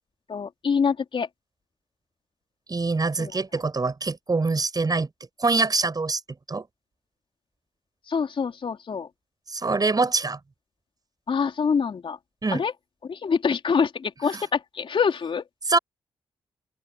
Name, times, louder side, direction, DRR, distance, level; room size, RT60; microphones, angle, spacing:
voice 1, 0.3-1.3 3.2-3.3 8.1-9.1 11.3-12.2 12.5-12.7 13.1-15.4, left 6 dB, 60° left, 3.9 m, -25 dB
voice 2, 2.7-5.1 5.4-6.2 6.5-6.6 9.5-10.4 12.4-12.6 14.3-14.4 15.7-15.8, right 3 dB, 40° right, 5.3 m, -24 dB
open air
supercardioid pair, 40°, 10 cm